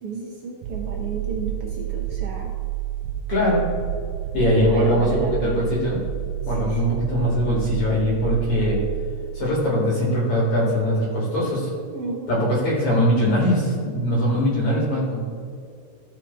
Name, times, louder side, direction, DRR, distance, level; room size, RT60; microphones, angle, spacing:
voice 1, 0.0-2.5 4.4-5.6 6.4-6.9 11.9-12.5, right 3 dB, 65° right, -1 dB, 1.4 m, -32 dB
sound 1, 0.6-9.7, right 12 dB, 85° right, 2.0 m, -29 dB
voice 2, 3.3-3.7 4.3-6.0 6.5-8.8 9.3-11.7 12.3-15.2, equal, 50° left, -5 dB, 2.5 m, -21 dB
14.5 x 4.9 x 4.4 m, 2.3 s
omnidirectional pair, 3.6 m